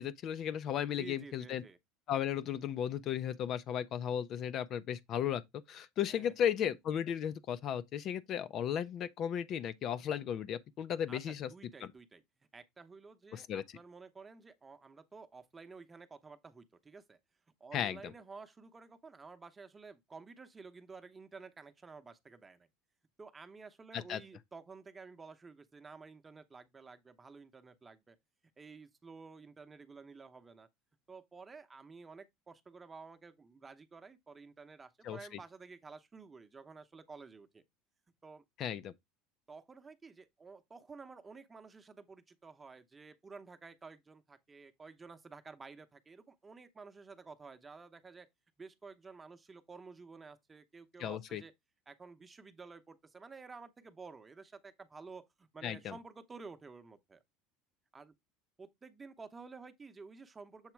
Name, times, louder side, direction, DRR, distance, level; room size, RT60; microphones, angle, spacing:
voice 1, 0.0-1.6 2.1-5.4 5.7-11.5 13.3-13.6 17.7-18.1 23.9-24.2 35.0-35.2 38.6-38.9 51.0-51.4 55.6-55.9, left 9 dB, 45° left, 0.5 m, -35 dB
voice 2, 0.9-1.8 6.1-6.5 11.1-12.2 12.5-17.2 17.6-22.7 23.2-28.2 28.6-30.7 31.1-37.6 38.2-38.4 39.5-48.3 48.6-51.5 51.9-57.2 57.9-58.1 58.6-60.7, right 4 dB, 20° right, 0.8 m, -52 dB
7.2 x 2.9 x 4.5 m
supercardioid pair, 105°, 0 cm